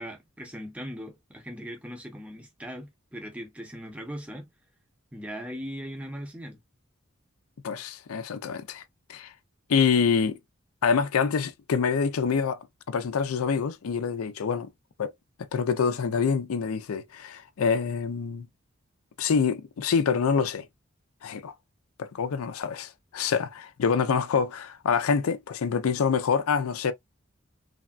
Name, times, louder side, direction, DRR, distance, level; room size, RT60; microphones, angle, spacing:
voice 1, 0.0-4.5 5.1-6.6, equal, 5° right, 0.6 m, -39 dB
voice 2, 7.6-8.8 9.1-9.3 9.7-10.4 10.8-12.6 12.9-14.7 15.0-15.1 15.5-18.5 19.2-20.7 21.2-21.5 22.0-26.9, left 6 dB, 90° left, 0.4 m, -26 dB
3.3 x 2.2 x 2.4 m
head